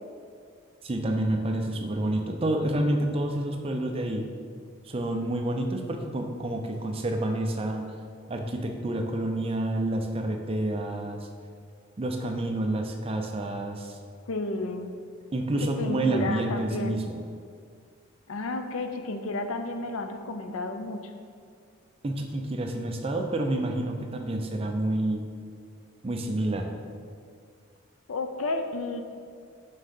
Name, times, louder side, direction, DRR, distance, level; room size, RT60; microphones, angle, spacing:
voice 1, 0.8-4.3 4.8-7.9 8.3-11.3 12.0-14.0 15.3-17.2 22.0-25.2 26.0-26.7, right 1 dB, 25° right, 4 dB, 0.4 m, -28 dB
voice 2, 14.3-15.0 15.6-17.0 18.3-21.0 28.1-29.0, left 2 dB, 80° left, 6 dB, 0.5 m, -32 dB
5.4 x 3.7 x 5.4 m, 2.2 s
head